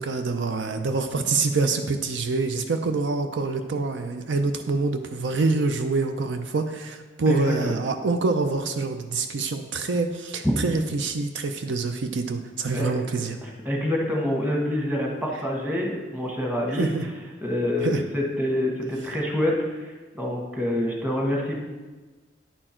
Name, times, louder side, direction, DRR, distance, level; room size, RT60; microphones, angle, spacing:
voice 1, 0.0-13.4 16.7-17.1 17.8-18.0, right 3 dB, 70° right, 7 dB, 0.5 m, -26 dB
voice 2, 7.3-7.7 12.7-12.9 13.4-16.9 17.4-19.5 19.8-21.6, left 1 dB, 10° right, -2 dB, 1.3 m, -26 dB
9.9 x 4.5 x 4.4 m, 1.3 s
head